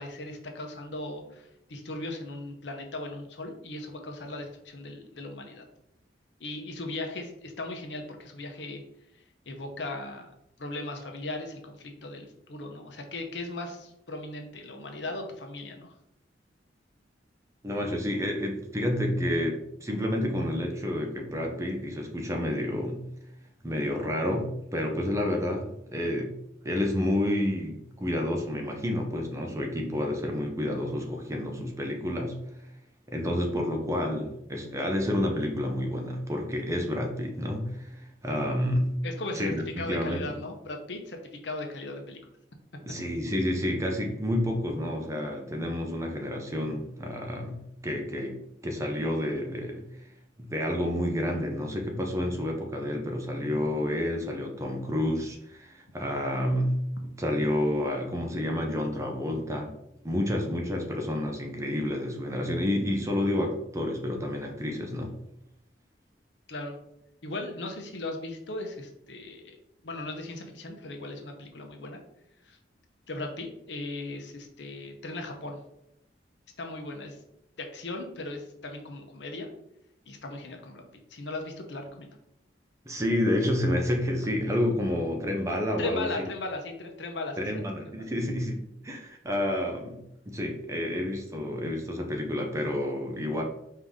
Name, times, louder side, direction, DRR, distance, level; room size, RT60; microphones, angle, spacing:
voice 1, 0.0-5.6 6.4-8.8 9.5-10.3 10.6-15.9 39.0-42.2 66.5-66.8 67.2-69.6 69.8-72.0 72.4-72.6 73.1-75.6 76.6-77.2 77.6-79.5 80.1-80.8 81.1-82.2 85.8-88.1, left 2 dB, 75° left, 4 dB, 0.8 m, -37 dB
voice 2, 17.6-23.0 23.6-26.4 26.6-32.4 33.1-39.0 39.3-40.3 42.8-49.8 50.4-56.8 57.2-59.7 60.0-65.1 82.9-86.1 87.4-93.4, left 1 dB, 15° right, 2 dB, 0.6 m, -29 dB
5.0 x 2.8 x 3.6 m, 0.80 s
head